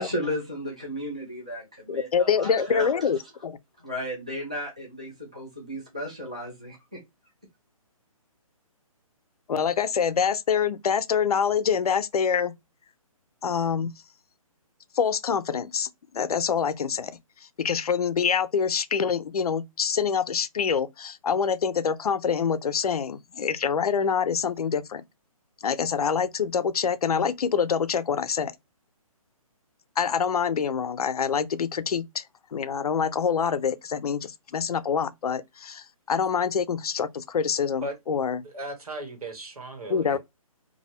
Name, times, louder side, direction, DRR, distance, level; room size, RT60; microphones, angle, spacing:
voice 1, 0.0-3.1 3.8-7.0, equal, 10° right, 0.3 m, -34 dB
voice 2, 1.9-3.6 9.5-12.5 13.4-13.9 15.0-15.9 16.1-17.2 17.6-25.0 25.6-28.5 30.0-32.2 32.5-38.4 39.9-40.2, left 6 dB, 85° left, 0.5 m, -26 dB
voice 3, 38.4-40.2, right 1 dB, 80° right, 1.5 m, -36 dB
2.7 x 2.6 x 3.0 m
hypercardioid pair, 175°, 19 cm